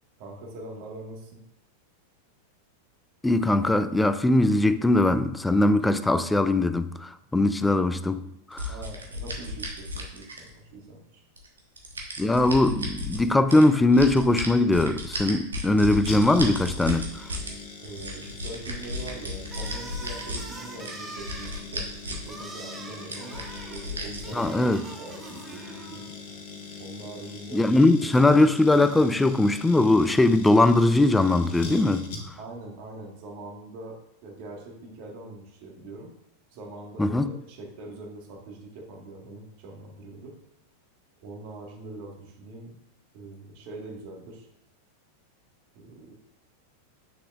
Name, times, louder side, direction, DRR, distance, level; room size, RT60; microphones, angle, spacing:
voice 1, 0.2-1.4 8.7-11.2 17.8-26.0 26.8-27.8 32.4-36.1 36.5-40.3 41.2-42.8 43.1-44.5 45.7-46.1, right 2 dB, 45° right, 1.7 m, -42 dB
voice 2, 3.2-8.7 12.2-17.3 24.3-24.8 27.5-32.1 37.0-37.3, left 2 dB, 5° left, 0.3 m, -21 dB
sound 1, 8.6-10.7 11.4-13.2 13.5-17.5 17.8-20.4 20.8-22.3 22.6-22.7 23.1-24.5, left 1 dB, 70° right, 1.2 m, -34 dB
sound 2, 16.1-32.6 32.8-32.9, left 4 dB, 50° left, 1.3 m, -42 dB
sound 3, 19.5-26.1, right 3 dB, 15° right, 1.0 m, -43 dB
7.8 x 6.4 x 2.5 m
figure-of-eight pair, 90°, 0 cm